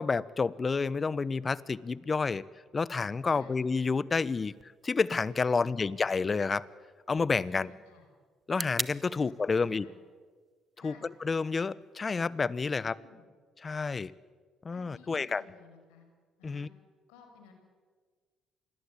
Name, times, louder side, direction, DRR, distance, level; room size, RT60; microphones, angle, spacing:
voice 1, 0.0-2.4 2.7-6.6 7.1-7.7 8.5-9.9 10.8-13.0 13.6-14.1 14.6-15.4 16.4-16.7, left 4 dB, 35° left, 20 dB, 1.0 m, -29 dB
sound 1, 4.5-12.5, right 1 dB, 10° right, 1.2 m, -45 dB
voice 2, 5.5-6.0 7.4-8.1 9.1-10.0 10.8-11.1 12.7-13.2 14.7-16.1 16.4-16.7 17.1-17.5, left 5 dB, 90° left, 5 dB, 6.0 m, -56 dB
27.5 x 21.0 x 8.6 m, 1.5 s
supercardioid pair, 65°, 0 cm